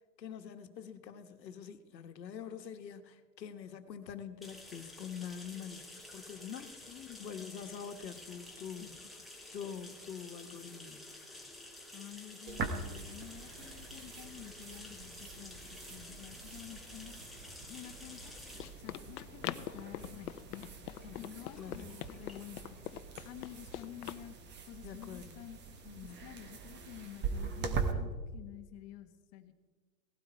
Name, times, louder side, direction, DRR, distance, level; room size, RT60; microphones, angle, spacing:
voice 1, 0.2-6.9 7.2-8.9 9.5-11.1 21.0-21.8 24.8-25.4 25.8-26.2, left 7 dB, 85° left, 8 dB, 1.5 m, -45 dB
sound 1, 4.4-23.8, left 2 dB, ahead, 1.6 m, -52 dB
voice 2, 6.9-7.6 8.8-8.9 11.9-17.1 17.7-18.3 18.8-20.7 21.1-24.3 24.7-25.6 26.0-29.5, left 14 dB, 30° left, 8 dB, 1.4 m, -50 dB
sound 2, 12.5-27.9, right 5 dB, 20° right, 1.4 m, -43 dB
Run, 18.0-24.2, left 12 dB, 65° left, 0.9 m, -44 dB
18.0 x 12.0 x 4.5 m, 1.4 s
hypercardioid pair, 130°, 49 cm